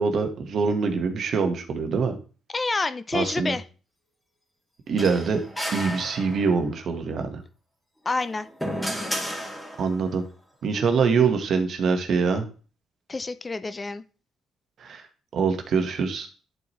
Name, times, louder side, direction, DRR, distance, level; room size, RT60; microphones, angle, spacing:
voice 1, 0.0-2.1 3.1-3.5 4.9-5.4 5.7-7.4 9.8-10.2 10.6-12.5 14.8-15.0 15.3-16.3, right 5 dB, 60° right, 6 dB, 1.4 m, -24 dB
voice 2, 2.5-3.6 8.1-8.5 13.1-14.0, left 3 dB, 25° left, 13 dB, 0.5 m, -28 dB
sound 1, 5.0-6.7 8.1-10.1, equal, ahead, 2.4 m, -33 dB
11.0 x 4.5 x 3.2 m, 0.37 s
cardioid pair, 90°, 0 cm